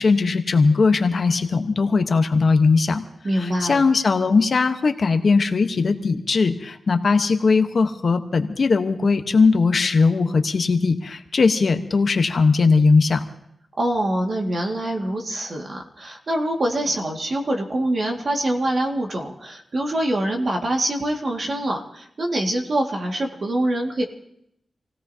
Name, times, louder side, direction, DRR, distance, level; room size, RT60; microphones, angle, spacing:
voice 1, 0.0-3.0 3.3-13.2, left 4 dB, 55° left, 7 dB, 1.0 m, -19 dB
voice 2, 3.2-3.8 13.8-24.0, right 1 dB, 50° right, 2 dB, 1.9 m, -24 dB
27.5 x 17.0 x 2.8 m, 0.76 s
wide cardioid pair, 105°, 0 cm